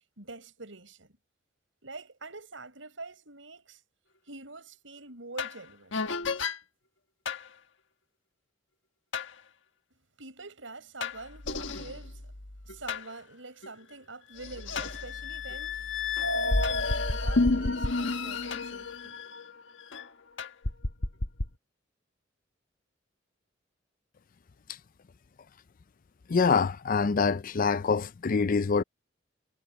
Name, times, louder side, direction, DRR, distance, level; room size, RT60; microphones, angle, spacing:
voice 1, 0.2-1.2 1.8-3.8 4.3-6.0 10.2-12.3 12.6-15.9 16.3-19.2, right 3 dB, 85° right, 6.1 m, -45 dB
sound 1, 5.4-5.6 5.9-6.6 7.3-7.5 9.1-9.3 11.0-13.1 13.6-13.7 14.4-20.1 20.4-21.5, left 3 dB, 75° left, 1.5 m, -31 dB
voice 2, 26.3-28.8, left 5 dB, 45° left, 0.5 m, -25 dB
head